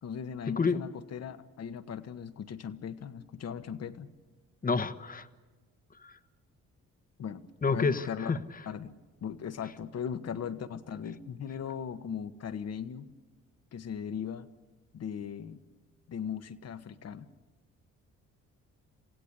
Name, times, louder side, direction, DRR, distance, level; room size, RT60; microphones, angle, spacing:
voice 1, 0.0-4.1 7.2-8.3 8.6-8.9 9.2-13.1 13.7-14.5 14.9-15.6 16.1-17.3, left 7 dB, 55° left, 11 dB, 1.4 m, -38 dB
voice 2, 4.6-5.3 7.6-8.4, left 4 dB, 30° left, 11 dB, 1.2 m, -28 dB
27.5 x 16.5 x 8.4 m, 1.3 s
cardioid pair, 90°, 30 cm